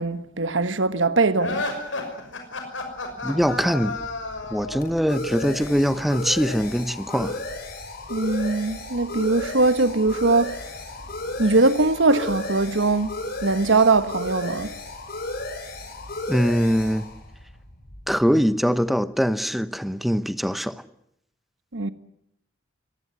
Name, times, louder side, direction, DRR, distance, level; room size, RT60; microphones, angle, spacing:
voice 1, 0.0-1.7 8.1-10.6 11.4-13.1 13.4-14.7 21.7-21.9, right 3 dB, 75° right, 1.4 m, -21 dB
sound 1, 1.4-4.9, left 2 dB, 80° left, 5.9 m, -31 dB
sound 2, 3.2-18.6, left 2 dB, 55° left, 6.2 m, -34 dB
voice 2, 3.2-4.0 4.5-7.4 16.3-17.1 18.1-20.8, equal, ahead, 1.0 m, -22 dB
24.0 x 19.0 x 9.8 m
head